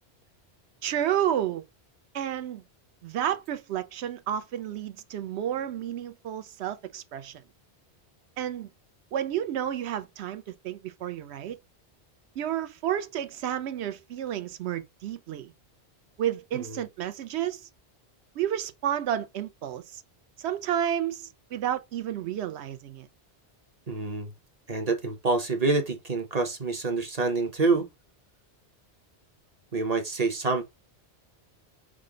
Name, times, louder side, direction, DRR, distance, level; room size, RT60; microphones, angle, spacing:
voice 1, 0.8-1.6 2.1-2.6 3.0-7.4 8.4-8.7 9.1-11.6 12.4-15.5 16.2-17.7 18.4-20.0 20.4-23.1, right 10 dB, 80° right, 0.8 m, -31 dB
voice 2, 23.9-24.3 24.7-27.9 29.7-30.6, right 3 dB, 40° right, 0.8 m, -27 dB
5.0 x 2.1 x 3.7 m
omnidirectional pair, 1.1 m